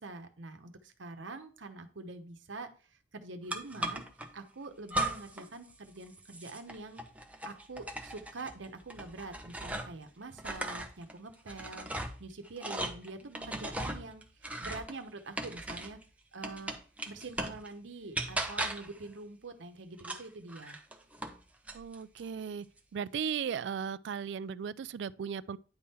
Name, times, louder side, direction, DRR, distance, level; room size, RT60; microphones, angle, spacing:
voice 1, 0.0-2.7 3.1-4.0 4.3-7.0 7.4-11.9 12.2-13.2 13.4-16.0 16.3-16.7 17.0-20.9, right 3 dB, 80° right, 0.9 m, -45 dB
sound 1, 3.5-4.3 4.9-5.5 5.8-10.0 10.4-16.0 16.4-17.7 18.1-19.0 20.0-21.4 21.7-22.3, right 1 dB, 10° right, 0.8 m, -38 dB
voice 2, 13.3-13.7 21.7-22.7 22.9-25.6, right 7 dB, 65° right, 0.3 m, -37 dB
9.7 x 3.7 x 4.2 m
head